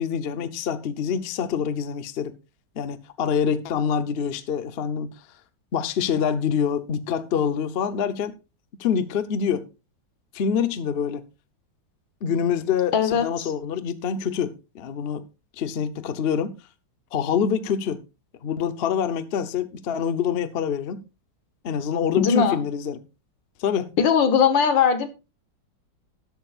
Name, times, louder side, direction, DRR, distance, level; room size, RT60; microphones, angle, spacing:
voice 1, 0.0-2.3 2.8-5.1 5.7-8.4 8.8-9.7 10.3-11.2 12.2-15.2 15.6-16.5 17.1-18.0 18.4-21.0 21.6-23.0 23.6-23.9, left 7 dB, 50° left, 0.8 m, -26 dB
voice 2, 12.9-13.5 22.2-22.6 24.0-25.1, left 7 dB, 85° left, 2.0 m, -20 dB
13.0 x 11.5 x 2.4 m
omnidirectional pair, 2.0 m